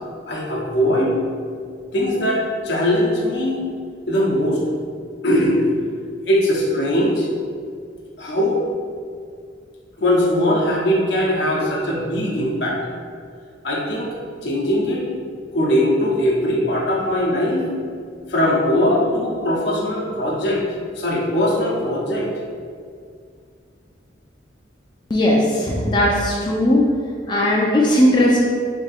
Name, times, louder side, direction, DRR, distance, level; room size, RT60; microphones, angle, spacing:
voice 1, 0.3-1.1 1.9-3.6 4.1-4.6 5.2-5.6 6.3-7.3 8.2-8.7 10.0-12.8 13.6-14.1 14.4-15.0 15.5-17.7 18.3-20.6 20.9-22.3, left 1 dB, 70° left, -3 dB, 0.8 m, -20 dB
voice 2, 25.1-26.9 27.3-28.4, left 1 dB, 25° left, -3 dB, 0.4 m, -17 dB
3.5 x 2.7 x 4.1 m, 2.2 s
head